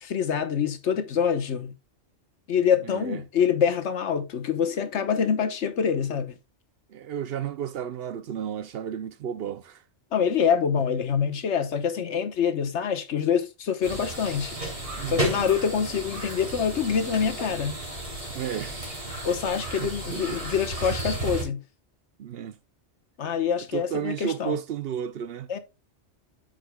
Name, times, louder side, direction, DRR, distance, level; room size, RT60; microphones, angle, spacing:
voice 1, 0.0-1.7 2.5-6.4 10.1-14.5 15.1-17.7 19.2-21.6 23.2-24.6 25.5-25.6, left 7 dB, 70° left, 1.2 m, -25 dB
voice 2, 2.8-3.2 6.9-9.8 14.9-15.5 18.3-18.9 19.8-20.4 22.2-22.6 23.7-25.5, right 9 dB, 65° right, 0.7 m, -33 dB
sound 1, 13.8-21.4, right 1 dB, 30° right, 3.0 m, -33 dB
12.5 x 4.9 x 2.2 m
omnidirectional pair, 1.2 m